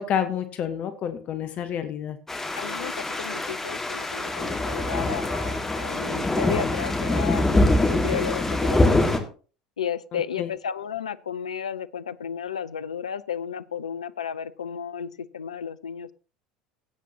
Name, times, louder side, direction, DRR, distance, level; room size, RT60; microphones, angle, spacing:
voice 1, 0.0-2.2 10.1-10.5, left 8 dB, 40° left, 10 dB, 1.1 m, -29 dB
sound 1, 2.3-9.2, left 2 dB, 10° left, 1.9 m, -24 dB
voice 2, 2.6-9.2 9.8-16.1, left 8 dB, 75° left, 14 dB, 0.5 m, -33 dB
17.0 x 8.3 x 2.9 m, 0.37 s
figure-of-eight pair, 70°, 4 cm